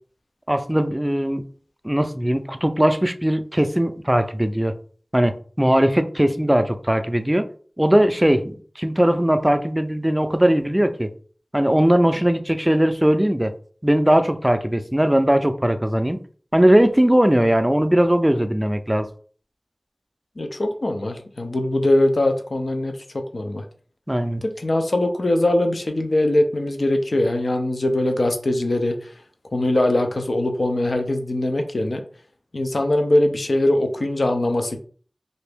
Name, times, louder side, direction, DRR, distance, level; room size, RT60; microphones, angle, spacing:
voice 1, 0.5-1.4 1.8-4.8 5.1-7.5 7.8-11.1 11.5-13.5 13.8-16.2 16.5-19.1 24.1-24.4, equal, 15° right, 0.4 m, -19 dB
voice 2, 20.4-22.9 23.3-23.6 24.4-28.9 29.5-32.0 32.5-34.8, left 1 dB, 80° left, 0.5 m, -21 dB
2.8 x 2.6 x 3.4 m
wide cardioid pair, 50°, 0 cm